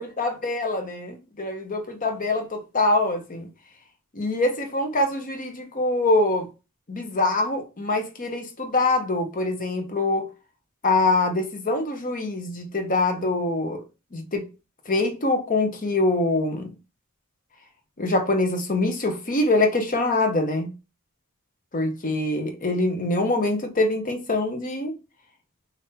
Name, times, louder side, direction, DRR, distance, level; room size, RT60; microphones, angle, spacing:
voice 1, 0.0-3.5 4.2-6.5 6.9-10.3 10.8-13.8 14.1-14.4 14.9-16.7 18.0-20.7 21.7-25.0, left 2 dB, 40° left, 0.9 m, -24 dB
3.6 x 2.7 x 4.1 m
head